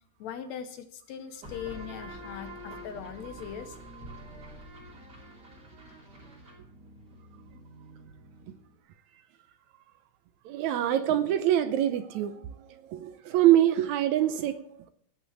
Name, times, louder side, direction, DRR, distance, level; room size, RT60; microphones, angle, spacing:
voice 1, 0.2-3.8, left 9 dB, 75° left, 1.8 m, -40 dB
sound 1, 1.4-8.8, right 1 dB, 30° right, 3.3 m, -46 dB
voice 2, 10.5-12.3 12.9-14.6, right 12 dB, 75° right, 1.8 m, -24 dB
18.0 x 6.0 x 7.1 m
omnidirectional pair, 3.6 m